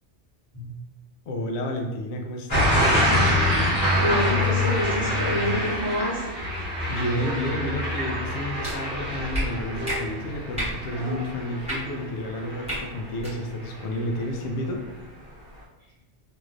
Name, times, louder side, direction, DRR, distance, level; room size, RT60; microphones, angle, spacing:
voice 1, 1.3-2.9 6.9-14.8, left 1 dB, 75° left, 2 dB, 0.8 m, -31 dB
sound 1, 2.5-13.3 13.7-14.2, equal, 50° left, 1.1 m, -26 dB
voice 2, 4.0-6.2, left 1 dB, 25° left, -14 dB, 1.6 m, -27 dB
sound 2, 7.2-8.0 8.4-9.1 9.7-11.5, right 1 dB, 75° right, 0.8 m, -39 dB
sound 3, 8.6-8.7 9.3-9.4 9.8-10.0 10.5-10.7 11.6-11.8 12.6-12.8 13.2-13.3, equal, 5° right, 1.4 m, -29 dB
3.1 x 2.8 x 2.5 m, 1.1 s
omnidirectional pair, 1.2 m